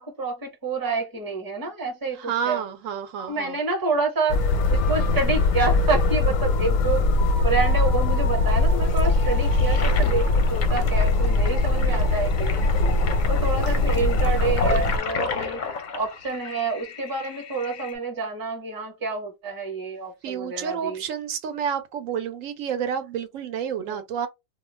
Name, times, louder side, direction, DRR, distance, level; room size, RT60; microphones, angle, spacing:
voice 1, 0.0-2.6 3.2-7.1 7.4-12.6 13.3-15.6 15.9-21.0 23.8-24.0, right 4 dB, 20° right, 0.8 m, -28 dB
voice 2, 2.2-3.6 20.2-24.3, right 8 dB, 85° right, 1.0 m, -29 dB
sound 1, 4.3-15.0, left 2 dB, 90° left, 1.0 m, -21 dB
Toilet flush, 8.8-17.9, left 5 dB, 55° left, 0.6 m, -33 dB
2.4 x 2.2 x 3.1 m
omnidirectional pair, 1.3 m